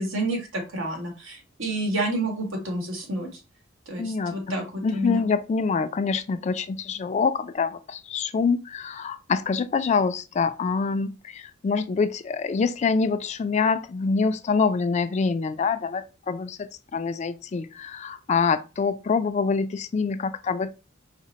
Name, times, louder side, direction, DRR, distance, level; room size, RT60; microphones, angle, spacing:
voice 1, 0.0-3.3 3.9-5.3, right 1 dB, 90° right, 1.5 m, -29 dB
voice 2, 4.0-20.7, left 5 dB, 35° left, 0.3 m, -25 dB
4.9 x 2.0 x 4.1 m
head